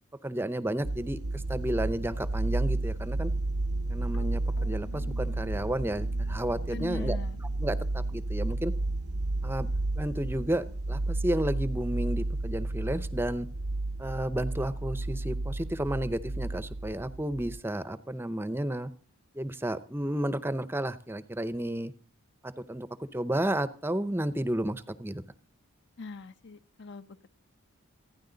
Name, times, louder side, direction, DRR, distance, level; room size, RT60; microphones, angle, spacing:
voice 1, 0.2-3.3 3.9-7.2 7.6-8.7 9.4-9.7 10.0-13.5 14.0-18.9 19.3-21.9 22.4-22.9 23.1-25.2, right 1 dB, 10° right, 14 dB, 0.7 m, -32 dB
sound 1, 0.8-17.6, right 2 dB, 80° right, 0.8 m, -32 dB
sound 2, 3.7-8.1, left 2 dB, 80° left, 1.6 m, -52 dB
voice 2, 6.7-7.4 26.0-27.3, left 3 dB, 50° left, 12 dB, 0.8 m, -42 dB
27.5 x 10.5 x 3.9 m, 0.38 s
head